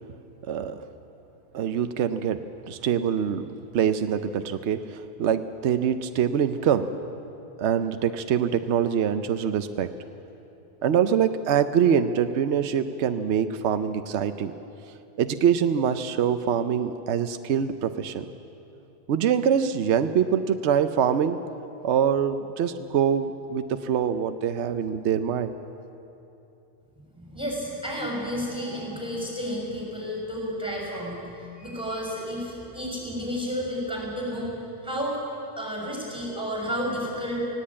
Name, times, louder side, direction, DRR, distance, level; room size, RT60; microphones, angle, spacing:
voice 1, 0.5-0.8 1.5-6.9 7.6-9.9 10.8-14.5 15.2-18.3 19.1-21.4 21.8-25.5, right 8 dB, 75° right, 9 dB, 1.0 m, -24 dB
voice 2, 27.1-31.3 31.5-34.6 34.8-35.2 35.6-37.4, equal, 5° right, -2 dB, 6.3 m, -31 dB
18.5 x 17.5 x 8.7 m, 2.9 s
omnidirectional pair, 1.2 m